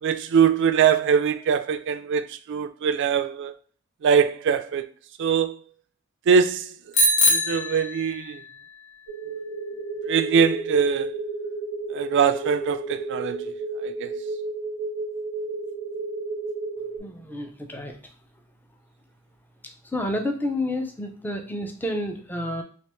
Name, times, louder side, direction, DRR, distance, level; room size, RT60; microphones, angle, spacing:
voice 1, 0.0-3.5 4.0-4.9 5.2-5.6 6.3-6.7 7.3-8.4 10.1-11.1 11.9-13.5 13.8-14.1, right 6 dB, 60° right, 0.3 m, -22 dB
Bicycle bell, 6.9-8.5, left 1 dB, 65° left, 0.7 m, -22 dB
sound 1, 9.1-17.0, right 3 dB, 80° left, 1.6 m, -32 dB
voice 2, 17.0-17.9 19.9-22.6, left 1 dB, 10° left, 0.4 m, -29 dB
3.3 x 2.9 x 2.9 m
head